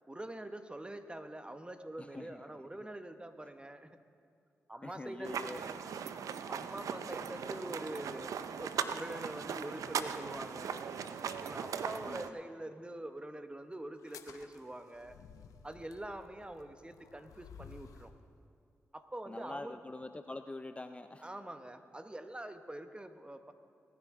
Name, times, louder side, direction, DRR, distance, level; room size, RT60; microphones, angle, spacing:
voice 1, 0.1-3.9 4.7-6.0 6.5-10.8 11.4-15.2 15.6-18.1 18.9-19.8 21.2-23.5, right 1 dB, 20° right, 8 dB, 1.0 m, -45 dB
voice 2, 2.0-2.4 4.8-5.6 12.1-12.4 19.3-21.3, left 2 dB, 20° left, 9 dB, 0.5 m, -45 dB
sound 1, 5.2-12.3, right 7 dB, 75° right, 0.5 m, -39 dB
sound 2, 14.0-18.2, left 7 dB, 80° left, 0.7 m, -55 dB
19.5 x 10.0 x 3.7 m, 2.3 s
supercardioid pair, 40°, 6 cm